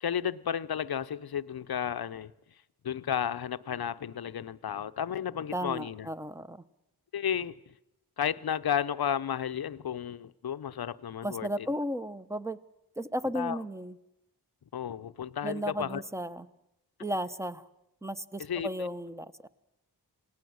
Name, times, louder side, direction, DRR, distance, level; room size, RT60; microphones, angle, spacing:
voice 1, 0.0-2.3 2.8-6.1 7.1-7.7 8.2-11.7 13.3-13.6 14.7-16.0 18.4-18.9, left 9 dB, 65° left, 0.8 m, -33 dB
voice 2, 5.5-6.6 11.2-12.6 13.0-14.0 15.4-16.5 17.0-17.6 18.0-19.3, equal, 5° right, 1.0 m, -34 dB
27.0 x 18.5 x 7.9 m
cardioid pair, 60°, 40 cm